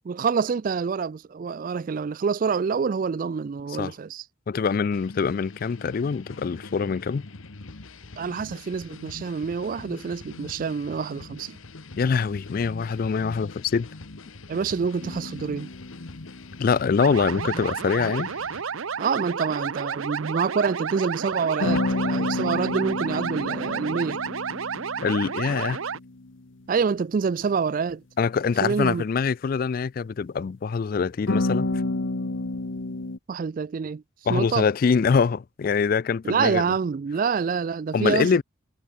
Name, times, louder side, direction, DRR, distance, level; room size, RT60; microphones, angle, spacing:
voice 1, 0.1-4.2 8.2-11.6 14.5-15.7 19.0-24.2 26.7-28.0 28.6-29.0 33.3-34.0 34.3-34.7 36.2-38.3, right 5 dB, 40° right, 0.3 m, -26 dB
voice 2, 4.5-7.3 12.0-13.9 16.6-18.3 25.0-25.8 28.2-31.7 34.3-36.6 37.9-38.4, left 5 dB, 45° left, 0.3 m, -24 dB
sound 1, 4.9-18.6, left 3 dB, 85° left, 1.3 m, -43 dB
sound 2, 15.0-17.3 21.6-26.4 31.3-33.2, left 2 dB, 70° left, 1.1 m, -30 dB
sound 3, 17.0-26.0, right 6 dB, 90° right, 0.8 m, -31 dB
head